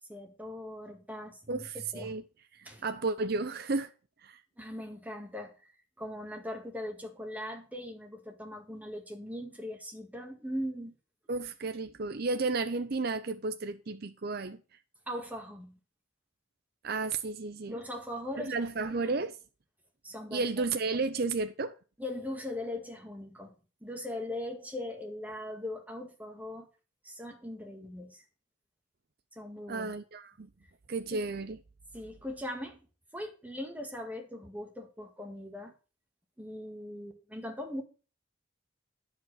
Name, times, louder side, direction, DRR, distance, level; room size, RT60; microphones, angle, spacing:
voice 1, 0.1-1.7 1.9-2.1 2.6-2.8 4.6-5.7 6.0-10.9 15.1-15.8 17.7-18.7 19.0-19.2 20.0-20.4 22.0-23.5 23.8-26.7 27.0-28.2 29.3-29.9 31.1-31.3 31.9-32.8 33.1-35.7 36.4-37.8, left 1 dB, 10° right, 1.9 m, -40 dB
voice 2, 1.5-2.2 2.5-3.9 4.2-4.4 11.3-14.6 16.8-17.8 18.4-19.3 20.3-21.8 29.7-30.5 30.9-31.6, right 3 dB, 50° right, 0.6 m, -33 dB
11.0 x 5.2 x 6.3 m
head